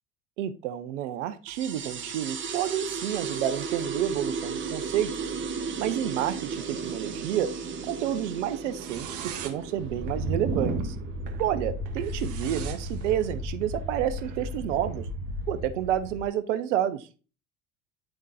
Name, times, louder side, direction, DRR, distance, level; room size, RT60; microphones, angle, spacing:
voice 1, 0.4-5.1 5.8-7.5 7.9-11.0 11.4-15.1 15.5-17.1, right 11 dB, 80° right, 11 dB, 0.9 m, -29 dB
sound 1, 1.5-12.5, right 5 dB, 35° right, 1.3 m, -35 dB
sound 2, 8.7-16.3, right 1 dB, 55° right, 1.3 m, -34 dB
10.0 x 3.7 x 2.6 m, 0.33 s
hypercardioid pair, 75°, 36 cm